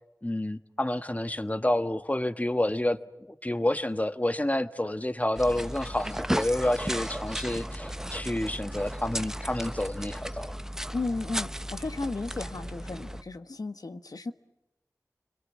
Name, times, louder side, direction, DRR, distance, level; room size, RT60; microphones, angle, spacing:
voice 1, 0.2-3.0 3.4-10.6, left 1 dB, 25° left, 1.4 m, -29 dB
sound 1, 5.4-13.2, equal, 10° right, 0.8 m, -35 dB
voice 2, 10.9-14.3, left 3 dB, 85° left, 1.4 m, -34 dB
30.0 x 22.5 x 7.4 m
wide cardioid pair, 45°, 6 cm